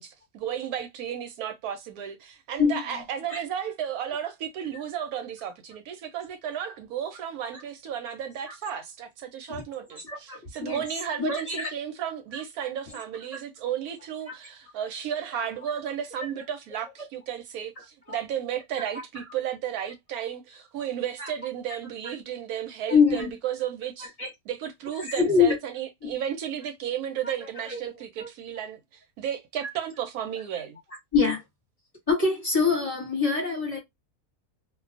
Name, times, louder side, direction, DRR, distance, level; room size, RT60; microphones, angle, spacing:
voice 1, 0.0-24.1 24.5-30.8, right 9 dB, 80° right, 1.1 m, -33 dB
voice 2, 10.0-10.8 11.1-11.7 12.3-12.4 16.2-16.3 17.8-18.2 21.2-21.3 22.0-22.1 22.9-23.3 24.2-24.3 25.1-25.6 26.0-26.1 27.6-27.8 28.2-28.3 31.1-31.4 32.1-33.8, left 5 dB, 25° left, 1.1 m, -24 dB
2.5 x 2.2 x 2.4 m
omnidirectional pair, 1.6 m